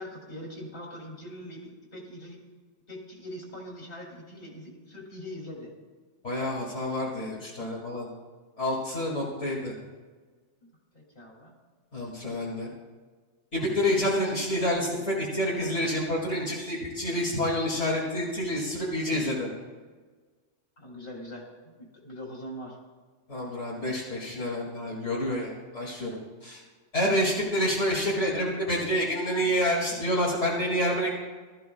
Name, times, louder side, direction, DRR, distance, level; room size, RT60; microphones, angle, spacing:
voice 1, 0.0-2.4 2.9-5.7 10.6-10.7 10.9-11.5 20.8-22.8, equal, 50° left, -2 dB, 3.2 m, -42 dB
voice 2, 6.2-8.1 8.6-9.7 11.9-12.7 13.5-19.5 23.3-26.6 26.9-31.2, equal, 70° left, -7 dB, 2.8 m, -28 dB
21.5 x 14.0 x 2.3 m, 1.4 s
omnidirectional pair, 1.3 m